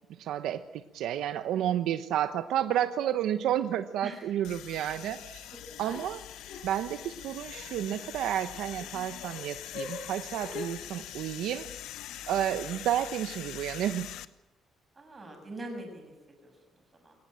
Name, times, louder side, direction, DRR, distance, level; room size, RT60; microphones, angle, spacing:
voice 1, 0.2-5.5 5.8-6.2 6.6-11.7 12.3-14.1, right 11 dB, 80° right, 10 dB, 1.0 m, -31 dB
voice 2, 1.5-1.9 4.0-4.3 5.1-5.2 5.5-6.0 12.2-12.6 14.9-17.2, right 1 dB, 20° right, 4 dB, 6.8 m, -45 dB
sound 1, 4.4-14.3, left 12 dB, 85° left, 1.0 m, -43 dB
sound 2, 5.8-10.9, left 5 dB, 70° left, 7.3 m, -44 dB
22.5 x 18.5 x 8.8 m, 0.97 s
cardioid pair, 145°, 0 cm